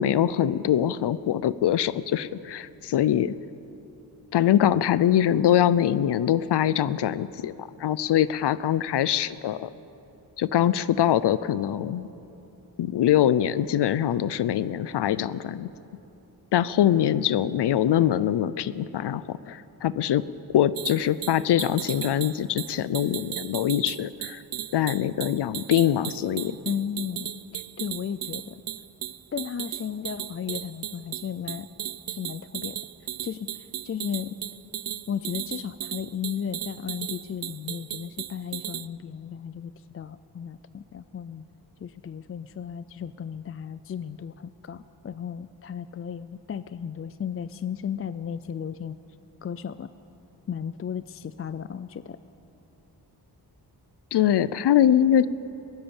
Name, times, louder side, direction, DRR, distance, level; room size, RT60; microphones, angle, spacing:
voice 1, 0.0-3.3 4.3-9.7 10.4-12.1 12.8-15.7 16.5-20.2 20.5-24.4 24.7-26.6 54.1-55.3, left 11 dB, 85° left, 17 dB, 0.6 m, -23 dB
sound 1, 20.7-38.9, right 11 dB, 60° right, 0.5 m, -36 dB
voice 2, 26.7-28.6 29.3-31.7 32.1-32.8 33.2-34.4 35.1-41.4 41.8-49.0 49.4-49.9 50.5-52.2, left 8 dB, 35° left, 14 dB, 0.4 m, -34 dB
22.5 x 18.5 x 7.1 m, 3.0 s
wide cardioid pair, 150°, 40 cm